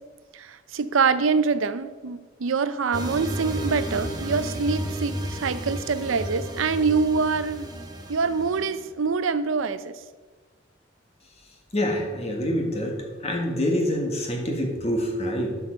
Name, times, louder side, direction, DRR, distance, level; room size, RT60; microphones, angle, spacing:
voice 1, 0.3-7.7 8.1-10.0, right 5 dB, 90° right, 13 dB, 0.6 m, -25 dB
sound 1, 2.9-8.9, right 1 dB, 20° right, 1.1 m, -33 dB
voice 2, 11.7-12.9 13.2-15.6, equal, 30° left, 1 dB, 1.8 m, -26 dB
11.5 x 5.9 x 5.3 m, 1.4 s
head